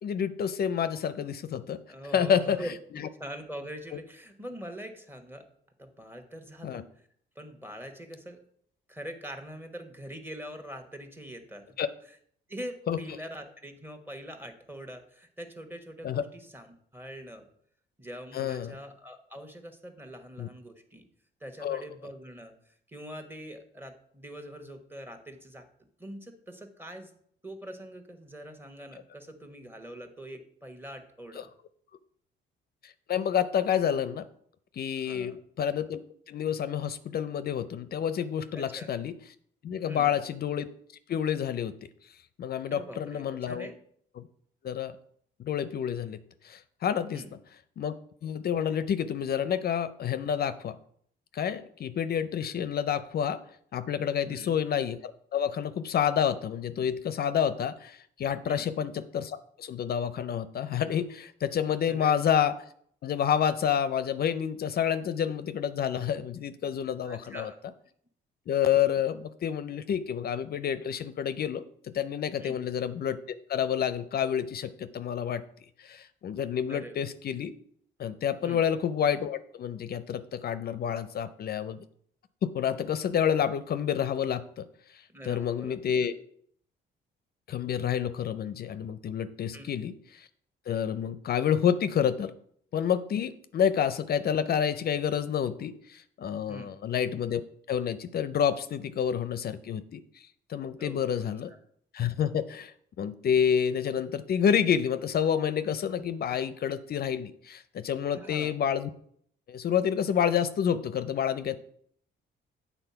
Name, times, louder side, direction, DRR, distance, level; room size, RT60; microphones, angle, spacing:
voice 1, 0.0-1.8 2.1-2.6 2.9-3.1 3.9-4.0 6.6-6.8 11.8-11.9 12.9-13.0 16.0-16.2 18.3-18.7 20.4-20.5 21.6-21.8 31.4-31.5 32.8-34.3 34.8-39.1 39.6-40.7 41.1-41.8 42.4-43.7 44.2-44.3 44.6-45.0 45.4-47.2 47.8-47.9 48.2-50.8 51.3-53.4 53.7-62.5 63.0-67.5 68.5-73.2 73.5-75.4 75.8-77.5 78.0-81.8 82.4-84.7 85.2-86.1 87.5-90.3 90.7-92.3 92.7-97.4 97.7-100.0 100.5-101.5 101.9-108.9 109.5-111.6, left 8 dB, 50° left, 13 dB, 0.5 m, -29 dB
voice 2, 1.9-2.7 3.2-5.4 5.8-7.1 7.3-8.4 8.9-11.7 12.1-12.2 12.5-16.7 16.9-17.5 18.0-21.0 21.4-25.7 26.0-27.1 27.4-31.5 35.0-35.4 38.5-38.9 39.8-40.2 42.7-43.7 47.1-47.3 54.2-54.5 58.5-58.7 61.9-62.2 67.0-67.6 72.4-72.6 76.7-77.0 78.4-78.6 85.1-85.8 89.5-89.7 96.5-96.7 100.7-101.0 101.5-101.6 108.1-108.5, equal, 10° right, 5 dB, 1.2 m, -43 dB
7.9 x 4.0 x 5.7 m, 0.64 s
cardioid pair, 90°, 20 cm